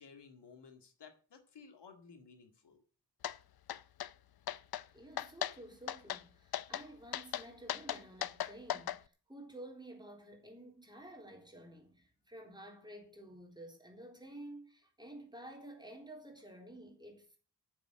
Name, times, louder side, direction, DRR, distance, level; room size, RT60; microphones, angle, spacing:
voice 1, 0.0-2.8, left 5 dB, 80° left, 2.1 m, -56 dB
sound 1, 3.2-3.4 3.7-4.1 4.5-4.8 5.2-5.6 5.9-6.2 6.5-6.9 7.1-9.0, left 11 dB, 65° left, 0.6 m, -37 dB
voice 2, 4.9-17.4, right 1 dB, 10° right, 3.9 m, -52 dB
9.7 x 7.4 x 7.6 m
wide cardioid pair, 105°, 41 cm